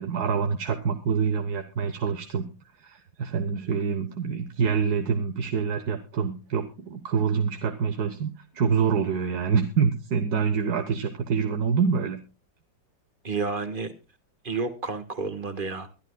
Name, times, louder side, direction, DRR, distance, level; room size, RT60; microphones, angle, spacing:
voice 1, 0.0-2.5 2.8-12.2, right 6 dB, 60° right, 7 dB, 1.5 m, -26 dB
voice 2, 13.2-13.9 14.4-15.9, right 4 dB, 30° right, 9 dB, 1.4 m, -30 dB
23.5 x 12.0 x 2.2 m, 0.30 s
omnidirectional pair, 2.0 m